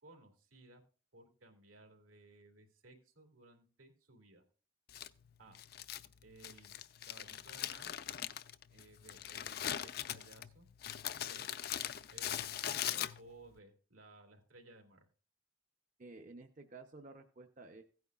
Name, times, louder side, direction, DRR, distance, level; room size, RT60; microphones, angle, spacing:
voice 1, 0.0-0.8 1.1-4.4 5.4-5.6 6.2-6.8 7.1-7.9 8.7-10.7 11.1-11.5 12.1-15.1, right 2 dB, 85° right, 3 dB, 2.7 m, -59 dB
Crumpling crinkling, 4.9-13.5, left 10 dB, 50° left, 0.4 m, -41 dB
voice 2, 16.0-17.8, right 3 dB, 40° right, 5 dB, 0.7 m, -53 dB
16.0 x 9.4 x 2.4 m, 0.38 s
head